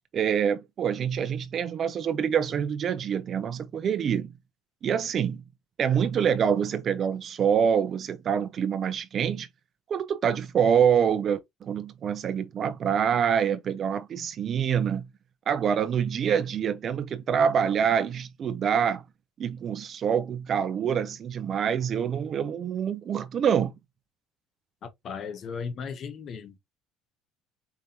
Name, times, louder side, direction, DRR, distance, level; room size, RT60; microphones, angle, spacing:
voice 1, 0.1-4.3 4.8-5.4 5.8-9.5 9.9-15.1 15.5-19.0 19.4-23.7, right 8 dB, 45° right, 0.8 m, -26 dB
voice 2, 24.8-26.6, left 6 dB, 50° left, 1.2 m, -36 dB
4.8 x 3.7 x 2.8 m
supercardioid pair, 100°, 0 cm